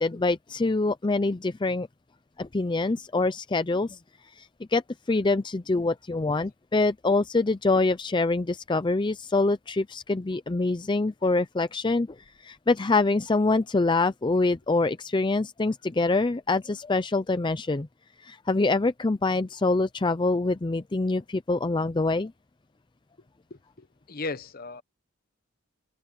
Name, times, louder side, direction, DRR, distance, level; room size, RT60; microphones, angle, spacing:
voice 1, 0.0-1.9 2.4-4.0 4.4-4.8 5.1-12.1 12.4-17.9 18.2-22.3, left 3 dB, 25° left, 0.5 m, -25 dB
voice 2, 23.5-24.8, left 3 dB, 50° left, 1.0 m, -37 dB
head